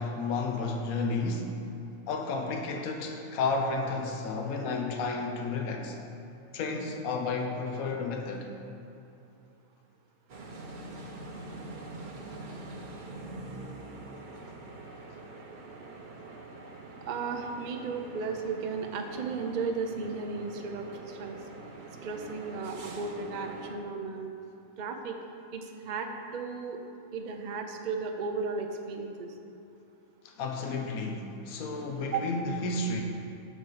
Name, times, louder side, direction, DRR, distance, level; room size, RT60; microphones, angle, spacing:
voice 1, 0.0-1.6 2.1-6.0 6.5-8.5 11.3-11.4 30.2-33.0, left 3 dB, 75° left, 3 dB, 1.2 m, -32 dB
sound 1, 10.3-23.8, right 2 dB, 40° right, 0.8 m, -44 dB
voice 2, 17.0-21.4 22.0-24.3 24.8-25.2 25.5-26.8 27.1-29.3 32.1-32.3, right 4 dB, 65° right, 4 dB, 0.4 m, -35 dB
11.0 x 4.1 x 6.5 m, 2.8 s
omnidirectional pair, 1.5 m